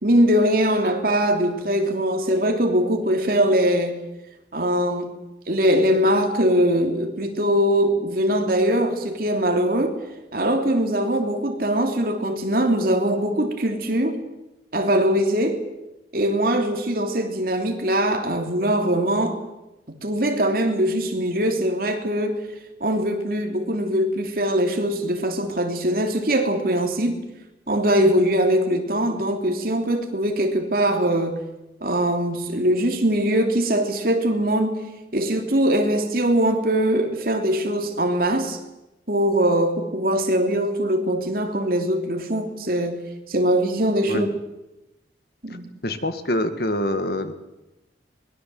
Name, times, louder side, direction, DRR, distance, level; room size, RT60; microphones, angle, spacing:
voice 1, 0.0-4.0 4.5-5.1 5.5-9.9 10.3-14.2 14.7-15.6 16.1-19.4 20.0-22.5 22.8-27.2 27.7-31.4 31.8-34.8 35.1-38.6 39.1-43.0 43.3-44.3 45.4-45.7, equal, 50° right, 4 dB, 3.0 m, -22 dB
voice 2, 45.8-47.3, left 1 dB, 55° left, 9 dB, 1.8 m, -25 dB
23.0 x 21.0 x 7.8 m, 0.98 s
head